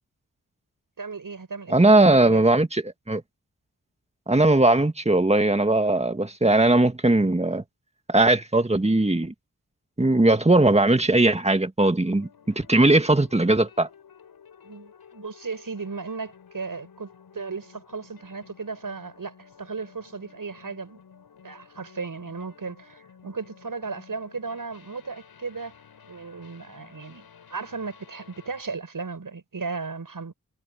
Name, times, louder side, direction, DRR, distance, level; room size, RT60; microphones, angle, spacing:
voice 1, 1.0-1.7 2.2-2.4 14.6-21.0 21.4-25.7 26.0-30.3, right 4 dB, 60° right, 7.2 m, -36 dB
voice 2, 1.7-3.2 4.3-7.6 8.1-9.3 10.0-12.3 12.6-13.9, right 2 dB, 20° right, 2.0 m, -19 dB
sound 1, 12.0-28.6, left 7 dB, 90° left, 7.2 m, -53 dB
cardioid pair, 40°, 36 cm